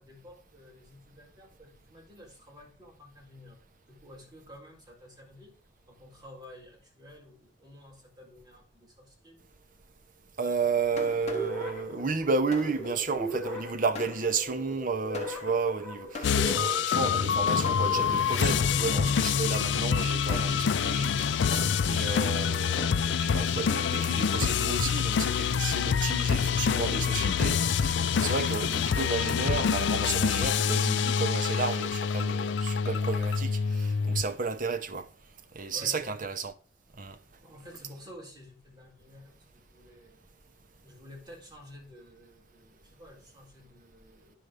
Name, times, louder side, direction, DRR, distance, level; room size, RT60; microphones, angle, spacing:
voice 1, 0.0-3.6 3.9-5.6 5.9-9.5 35.7-36.2 37.4-40.2 40.8-44.4, left 1 dB, 25° right, 3.8 m, -51 dB
voice 2, 10.4-35.1 35.5-36.5 37.0-37.2, right 4 dB, 50° right, 0.8 m, -32 dB
Fireworks, 10.5-17.0 17.6-18.5 19.1-19.4 19.9-24.1, left 2 dB, 40° left, 1.4 m, -44 dB
sound 1, 11.2-19.2, right 1 dB, 5° left, 4.3 m, -40 dB
sound 2, 16.2-34.2, left 7 dB, 75° left, 0.4 m, -26 dB
9.6 x 6.7 x 5.0 m
head